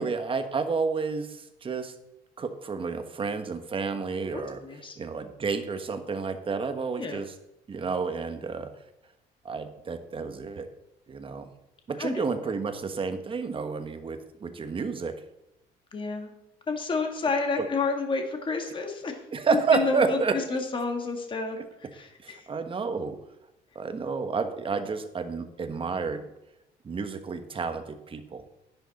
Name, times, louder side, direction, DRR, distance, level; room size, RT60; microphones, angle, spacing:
voice 1, 0.0-1.9 2.4-4.6 5.0-7.3 7.7-8.7 9.4-10.7 11.1-11.5 11.9-15.2 17.6-17.7 19.3-20.4 21.5-21.6 22.2-23.2 23.7-26.3 26.8-28.4, right 5 dB, 30° right, 8 dB, 1.3 m, -30 dB
voice 2, 4.3-4.9 7.0-7.2 12.0-12.2 15.9-16.3 16.7-19.2 19.7-21.6 21.9-22.4, left 4 dB, 30° left, 4 dB, 1.8 m, -30 dB
10.5 x 10.5 x 4.2 m, 0.87 s
cardioid pair, 110°, 17 cm